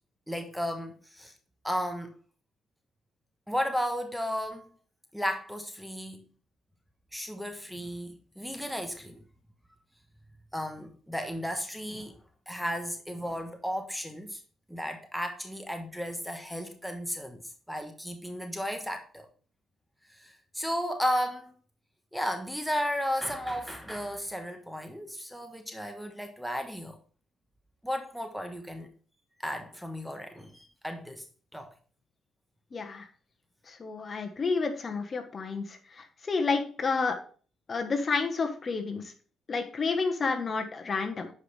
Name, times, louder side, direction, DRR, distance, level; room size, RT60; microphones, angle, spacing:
voice 1, 0.3-1.3 1.6-2.2 3.5-4.7 5.1-6.3 7.1-9.2 10.5-12.2 12.5-14.4 14.7-17.4 17.7-19.3 20.2-21.5 22.1-27.0 27.8-28.9 29.4-31.2 31.5-31.7, equal, ahead, 1.1 m, -34 dB
voice 2, 32.7-33.1 33.7-37.2 37.7-39.1 39.5-41.3, left 4 dB, 40° left, 1.3 m, -30 dB
9.7 x 4.9 x 3.4 m
cardioid pair, 90°, 0 cm